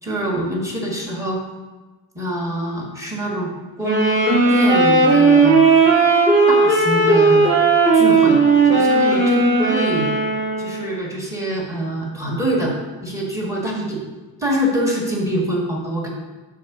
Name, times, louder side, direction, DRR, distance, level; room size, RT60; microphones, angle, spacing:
voice 1, 0.0-1.4 2.1-3.5 3.8-5.6 6.5-7.4 7.9-10.1 10.6-12.7 13.0-14.0 14.4-16.1, right 1 dB, 5° right, -3 dB, 1.7 m, -24 dB
sound 1, 3.8-10.9, right 3 dB, 25° right, 2.2 m, -15 dB
6.3 x 3.7 x 6.0 m, 1.2 s
cardioid pair, 135°, 43 cm